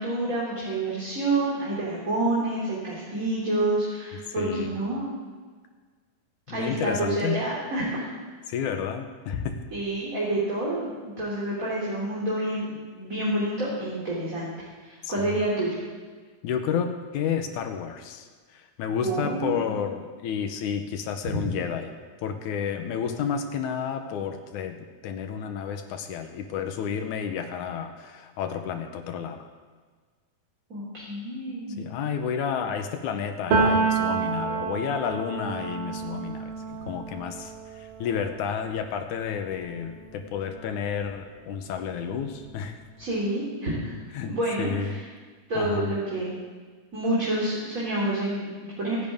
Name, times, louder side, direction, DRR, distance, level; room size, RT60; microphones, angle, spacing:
voice 1, 0.0-5.1 6.5-8.1 9.7-14.5 14.8-15.8 19.0-19.8 21.3-21.4 30.7-31.8 43.0-43.9 44.3-45.0 45.5-46.3 46.9-49.1, right 2 dB, 25° right, -7 dB, 3.1 m, -28 dB
voice 2, 4.4-4.7 6.5-7.5 8.5-9.6 15.0-15.1 16.4-22.0 22.2-29.5 31.8-42.8 44.1-45.0 45.6-45.9, left 7 dB, 75° left, 6 dB, 2.3 m, -31 dB
Piano, 33.5-41.1 41.5-43.0, right 4 dB, 90° right, 3.8 m, -30 dB
26.5 x 10.5 x 3.6 m, 1.5 s
omnidirectional pair, 3.6 m